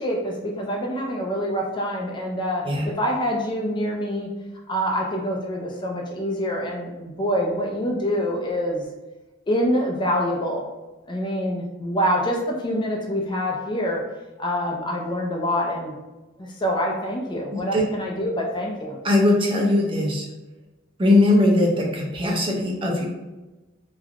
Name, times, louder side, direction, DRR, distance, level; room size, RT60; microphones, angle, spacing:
voice 1, 0.0-4.3 4.7-8.8 9.5-10.6 11.1-14.0 14.4-16.0 16.4-19.0, equal, 25° left, -1 dB, 0.4 m, -26 dB
voice 2, 17.5-17.8 19.0-20.3 21.0-23.1, left 2 dB, 25° right, -1 dB, 0.5 m, -20 dB
3.3 x 2.2 x 2.3 m, 1.1 s
head